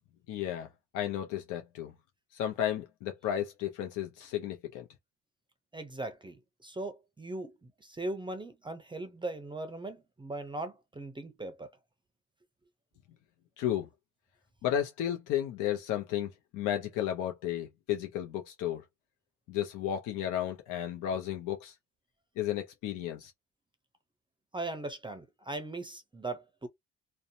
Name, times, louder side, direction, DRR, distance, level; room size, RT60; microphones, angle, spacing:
voice 1, 0.3-0.7 0.9-1.9 2.3-4.8 13.6-13.9 14.6-18.8 19.5-21.7 22.4-23.3, left 11 dB, 90° left, 0.5 m, -33 dB
voice 2, 5.7-11.7 24.5-26.7, right 2 dB, 15° right, 0.5 m, -39 dB
2.6 x 2.1 x 2.6 m
cardioid pair, 90°, 30 cm